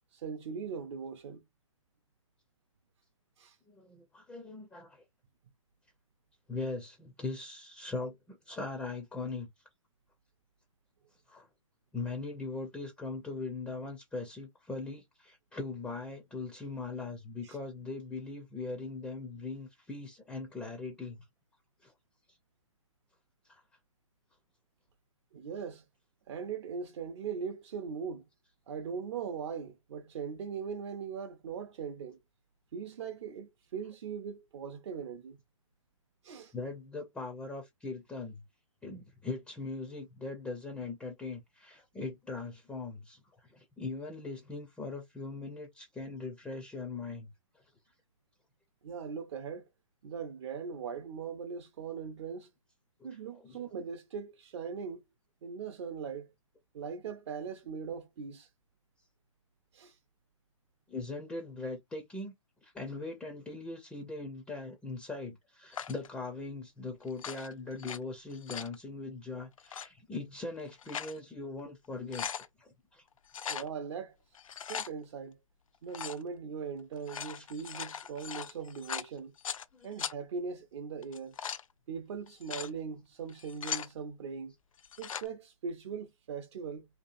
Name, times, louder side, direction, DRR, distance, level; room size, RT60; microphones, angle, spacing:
voice 1, 0.1-1.4 3.4-3.6 17.4-17.6 25.3-25.9 26.3-28.3 28.7-32.2 32.7-35.4 36.2-36.5 48.8-49.7 50.0-52.5 53.0-55.0 55.4-56.3 56.7-58.5 59.7-60.0 73.5-74.1 74.7-75.4 75.8-79.3 79.8-81.4 81.9-84.5 85.0-86.9, right 6 dB, 55° right, 0.5 m, -40 dB
voice 2, 3.7-5.0 6.5-9.5 11.3-11.5 11.9-21.2 21.8-21.9 23.4-23.6 36.5-38.4 38.8-47.3 53.3-53.6 60.9-62.3 62.6-72.3 72.6-73.0 73.4-73.5 77.4-77.5 79.7-79.9, left 3 dB, 5° left, 0.4 m, -40 dB
sound 1, 65.7-66.1 67.1-68.0 68.3-68.7 69.6-69.9 70.6-71.2 71.6-71.7 71.9-72.5 73.3-73.7 74.3-74.9 75.9-76.2 76.9-79.6 80.0-80.1 81.0-81.6 82.3-82.7 83.3-83.9 84.8-85.3, left 7 dB, 80° left, 0.4 m, -39 dB
2.8 x 2.3 x 2.4 m
hypercardioid pair, 130°, 17 cm